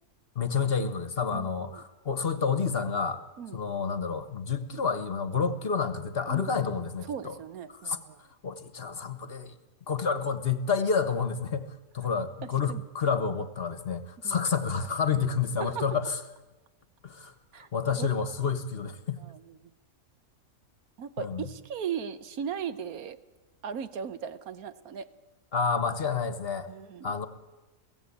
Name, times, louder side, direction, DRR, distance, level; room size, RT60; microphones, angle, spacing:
voice 1, 0.3-3.2 3.5-7.4 7.8-8.0 8.4-9.5 9.9-16.2 17.0-19.2 21.2-21.4 25.5-26.7 27.0-27.3, left 6 dB, 45° left, 11 dB, 1.3 m, -29 dB
voice 2, 1.3-1.8 3.4-3.6 6.3-8.2 12.7-12.8 14.2-14.4 15.6-15.9 17.5-18.1 19.2-19.6 21.0-23.2 23.6-25.1 26.7-27.1, right 7 dB, 85° right, 12 dB, 1.4 m, -38 dB
23.0 x 16.5 x 8.5 m, 1.1 s
omnidirectional pair, 1.5 m